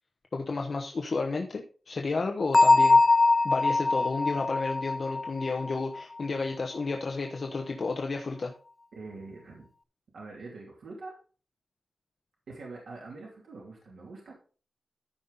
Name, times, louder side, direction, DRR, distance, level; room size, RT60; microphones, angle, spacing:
voice 1, 0.3-3.0 3.4-8.5, left 3 dB, 45° left, 2 dB, 1.0 m, -32 dB
Bell, 2.5-6.2, left 3 dB, 25° left, 0.4 m, -22 dB
voice 2, 8.9-9.7 10.1-11.1 12.5-14.3, right 3 dB, 85° right, -3 dB, 2.8 m, -44 dB
14.0 x 5.5 x 4.0 m, 0.38 s
wide cardioid pair, 165°, 0 cm